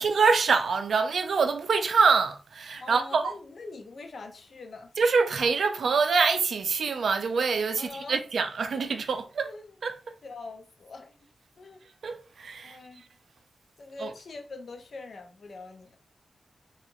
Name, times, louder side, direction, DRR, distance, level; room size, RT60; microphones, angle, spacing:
voice 1, 0.0-3.4 5.0-9.5 9.8-10.0 12.0-12.8 14.0-14.1, right 5 dB, 85° right, 0.3 m, -25 dB
voice 2, 2.8-5.0 7.8-8.2 8.7-8.8 9.4-9.8 10.2-11.2 11.6-11.8 12.6-13.0 13.8-16.0, left 3 dB, 70° left, 0.5 m, -43 dB
2.9 x 2.4 x 2.6 m
wide cardioid pair, 85°, 0 cm